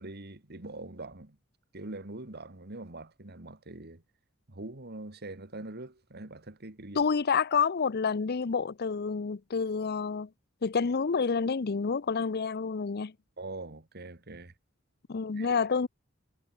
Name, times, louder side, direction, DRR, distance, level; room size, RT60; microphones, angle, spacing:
voice 1, 0.0-1.4 1.7-4.0 4.5-7.0 13.4-14.5 15.4-15.6, right 2 dB, 50° right, 2.2 m, -43 dB
voice 2, 7.0-10.3 10.6-13.1 15.1-15.9, left 5 dB, 50° left, 0.6 m, -28 dB
head